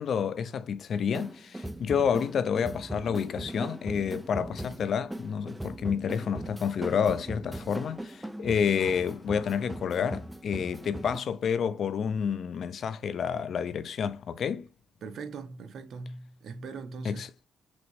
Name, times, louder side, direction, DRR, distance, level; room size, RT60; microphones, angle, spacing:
voice 1, 0.0-14.7 17.0-17.3, left 7 dB, 55° left, 0.6 m, -29 dB
sound 1, 1.1-11.2, right 1 dB, 5° right, 0.5 m, -39 dB
voice 2, 15.0-17.2, right 4 dB, 60° right, 1.1 m, -40 dB
6.1 x 3.0 x 2.6 m
cardioid pair, 85°, 0 cm